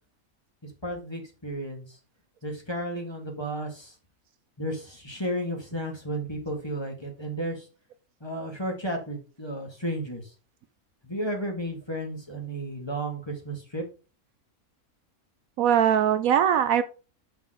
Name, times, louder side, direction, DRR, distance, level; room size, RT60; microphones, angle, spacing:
voice 1, 0.6-2.0 2.4-3.9 4.6-7.7 8.2-10.3 11.0-13.8, right 1 dB, 20° left, 2 dB, 1.8 m, -33 dB
voice 2, 15.6-16.8, right 9 dB, 75° right, 12 dB, 1.0 m, -21 dB
6.0 x 5.3 x 4.8 m, 0.34 s
omnidirectional pair, 1.6 m